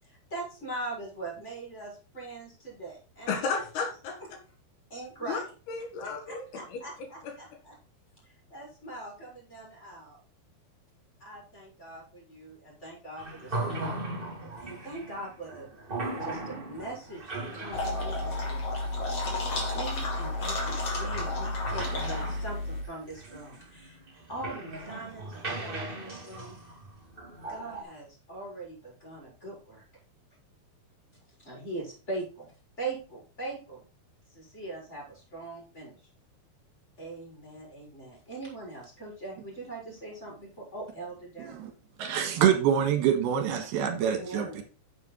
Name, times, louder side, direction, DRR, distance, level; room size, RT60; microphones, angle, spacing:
voice 1, 0.0-3.4 4.9-5.5 6.3-7.7 8.2-10.2 11.2-14.0 14.6-15.8 16.2-18.8 19.7-24.0 24.3-26.6 27.5-29.8 31.4-32.5 32.8-33.9 34.3-36.1 37.0-41.7 44.0-44.6, right 2 dB, 15° left, -3 dB, 5.3 m, -41 dB
voice 2, 3.3-4.2 5.2-5.4 5.7-6.8 7.2-7.3, left 5 dB, 80° left, 4 dB, 4.0 m, -33 dB
sound 1, 13.2-27.8, right 2 dB, 20° right, 1.7 m, -39 dB
sound 2, 17.7-22.8, left 2 dB, 40° left, 3.3 m, -31 dB
voice 3, 42.0-44.6, right 9 dB, 75° right, 6 dB, 3.5 m, -25 dB
9.6 x 7.5 x 4.0 m, 0.35 s
omnidirectional pair, 4.5 m